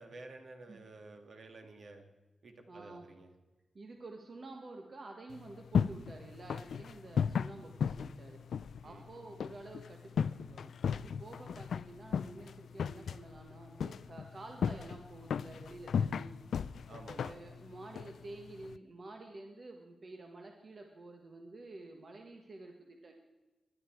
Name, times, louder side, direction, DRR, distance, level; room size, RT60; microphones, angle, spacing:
voice 1, 0.0-2.0 2.4-3.3 8.8-9.1 16.9-17.4, right 3 dB, 55° right, 5 dB, 2.1 m, -51 dB
voice 2, 2.7-3.1 3.7-8.4 8.8-16.3 17.2-23.1, right 2 dB, 35° right, 3 dB, 1.5 m, -50 dB
sound 1, 5.3-18.8, left 7 dB, 75° left, 0.4 m, -37 dB
20.5 x 11.5 x 4.6 m, 1.1 s
wide cardioid pair, 165°, 0 cm